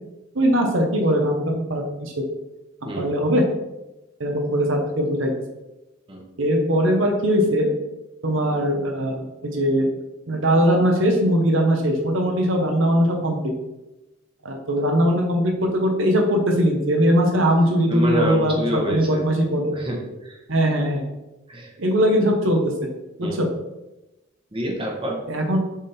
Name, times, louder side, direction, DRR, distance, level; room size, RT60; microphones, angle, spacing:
voice 1, 0.3-2.1 2.8-3.4 4.2-5.3 6.4-7.7 8.2-9.9 10.3-13.4 14.4-19.7 20.5-21.0 21.8-22.7 23.2-23.5 25.3-25.6, equal, 75° right, 2 dB, 1.1 m, -20 dB
voice 2, 17.9-19.2 19.6-20.4 21.5-21.7 23.2-23.4 24.5-25.2, equal, 25° right, 0 dB, 1.2 m, -27 dB
7.2 x 3.6 x 4.3 m, 0.98 s
head